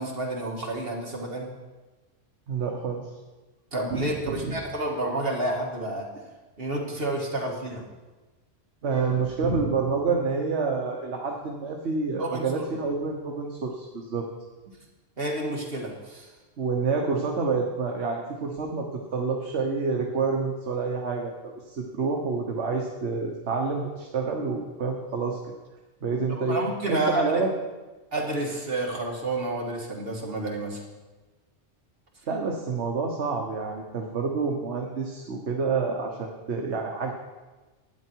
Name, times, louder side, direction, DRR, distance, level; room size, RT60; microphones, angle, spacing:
voice 1, 0.0-1.5 3.7-6.1 6.6-7.8 12.2-12.6 15.2-16.3 26.3-27.4 28.1-30.8, right 2 dB, 55° right, -1 dB, 2.1 m, -30 dB
voice 2, 2.5-3.1 3.9-4.6 8.8-14.3 16.6-18.9 19.1-21.3 21.6-25.4 26.0-26.6 26.9-27.5 32.3-37.1, right 4 dB, 70° right, 1 dB, 1.3 m, -28 dB
12.0 x 9.2 x 4.5 m, 1.2 s
omnidirectional pair, 1.2 m